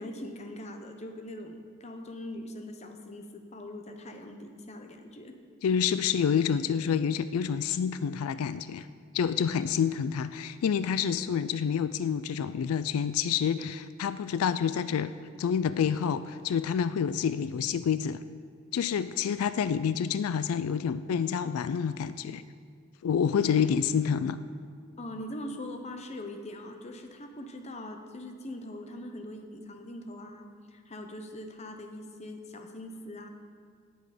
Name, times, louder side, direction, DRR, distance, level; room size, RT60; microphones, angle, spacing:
voice 1, 0.0-5.3 23.3-23.6 25.0-33.3, left 1 dB, 30° left, 5 dB, 0.9 m, -42 dB
voice 2, 5.6-8.9 9.1-15.1 15.4-18.2 18.7-22.4 23.0-24.4, left 7 dB, 90° left, 13 dB, 0.4 m, -28 dB
17.0 x 6.3 x 5.0 m, 2.1 s
head